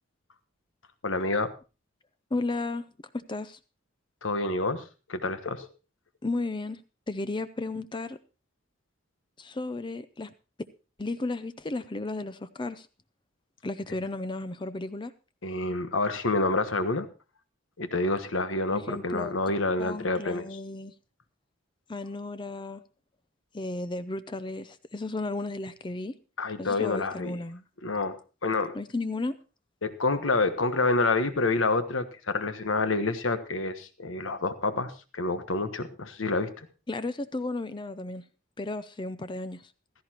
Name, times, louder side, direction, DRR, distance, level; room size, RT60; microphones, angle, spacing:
voice 1, 1.0-1.5 4.2-4.8 5.1-5.7 15.4-17.1 17.8-20.5 26.4-27.4 27.8-28.8 29.8-36.7, left 3 dB, 75° left, 10 dB, 1.3 m, -28 dB
voice 2, 2.3-2.8 3.1-3.6 6.2-6.8 7.1-8.2 9.4-10.3 11.0-12.9 13.6-15.1 18.7-19.3 19.8-20.9 21.9-22.8 23.5-26.2 26.6-27.6 28.7-29.4 36.9-38.2 38.6-39.7, left 2 dB, 25° left, 13 dB, 0.5 m, -34 dB
16.0 x 14.0 x 2.9 m, 0.32 s
head